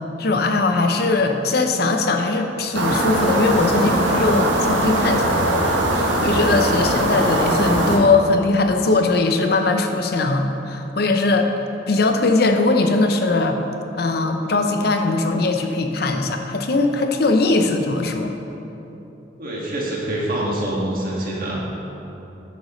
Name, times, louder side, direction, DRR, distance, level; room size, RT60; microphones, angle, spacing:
voice 1, 0.2-11.5 11.9-13.6 14.0-18.3, left 3 dB, 55° left, 5 dB, 0.6 m, -20 dB
sound 1, 2.7-8.0, right 1 dB, 85° right, 1.0 m, -20 dB
voice 2, 6.7-7.1 18.8-18.9 19.4-21.5, right 1 dB, 50° right, -4 dB, 1.8 m, -26 dB
10.0 x 8.0 x 3.1 m, 3.0 s
head